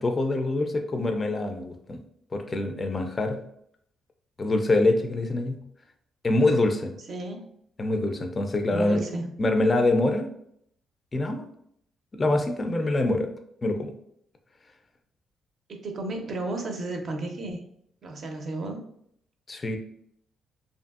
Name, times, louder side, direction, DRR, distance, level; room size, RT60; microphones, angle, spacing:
voice 1, 0.0-2.0 2.3-3.4 4.4-5.6 6.2-6.9 7.8-9.0 9.4-10.3 11.1-11.4 12.1-13.3 13.6-13.9 19.5-19.8, left 2 dB, 30° left, 5 dB, 0.3 m, -25 dB
voice 2, 7.0-7.5 8.7-9.3 15.7-17.6 18.0-18.8, right 2 dB, 55° right, 3 dB, 0.5 m, -33 dB
2.6 x 2.5 x 2.4 m, 0.69 s
cardioid pair, 90°, 0 cm